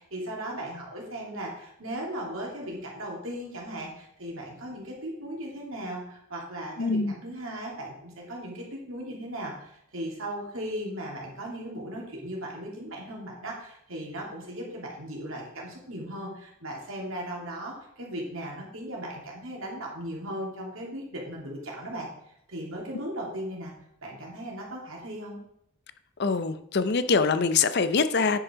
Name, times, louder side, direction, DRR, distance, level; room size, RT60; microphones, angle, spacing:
voice 1, 0.0-23.7 24.0-25.4, right 1 dB, 65° right, -2 dB, 2.7 m, -37 dB
voice 2, 6.8-7.1 26.2-28.4, left 4 dB, 50° left, 12 dB, 0.5 m, -24 dB
9.8 x 5.3 x 5.1 m, 0.76 s
head